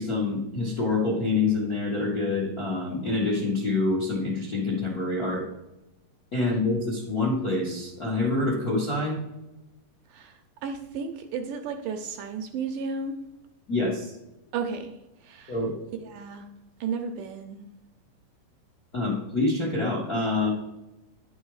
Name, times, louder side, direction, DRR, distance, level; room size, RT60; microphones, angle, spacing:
voice 1, 0.0-5.4 6.3-9.2 13.7-14.1 15.5-15.7 18.9-20.5, left 3 dB, 50° left, -3 dB, 1.0 m, -26 dB
voice 2, 10.1-13.2 14.5-15.6 16.0-16.5 16.8-17.7 20.4-20.5, right 5 dB, 75° right, 5 dB, 2.1 m, -34 dB
10.5 x 5.5 x 4.7 m, 0.97 s
omnidirectional pair, 4.2 m